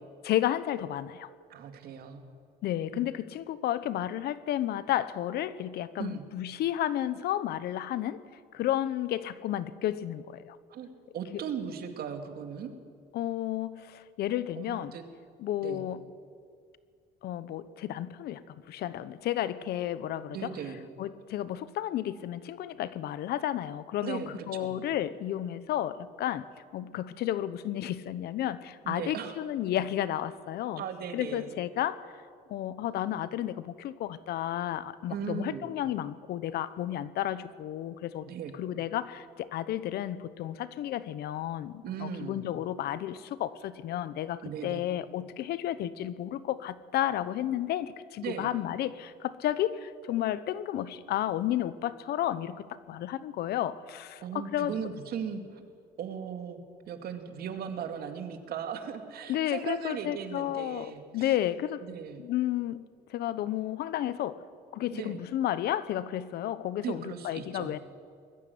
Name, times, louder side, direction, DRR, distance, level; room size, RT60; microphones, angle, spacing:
voice 1, 0.2-1.3 2.6-8.2 8.5-10.6 13.1-14.9 15.4-16.0 17.2-20.5 21.0-26.5 26.7-30.8 31.1-32.1 32.5-38.3 38.6-54.7 59.3-61.9 62.2-64.5 64.7-67.8, left 12 dB, 70° left, 16 dB, 1.0 m, -32 dB
voice 2, 1.5-2.2 2.9-3.0 6.0-6.2 10.7-12.7 14.6-15.0 15.6-15.8 20.3-20.8 24.0-24.8 28.8-29.4 30.8-31.5 35.1-35.7 38.3-38.6 41.8-42.4 44.4-44.8 48.2-48.5 54.2-55.6 56.0-61.3 61.8-62.3 64.9-65.2 66.8-67.7, right 7 dB, 65° right, 6 dB, 2.5 m, -38 dB
21.0 x 14.5 x 9.6 m, 2.2 s
cardioid pair, 110°, 17 cm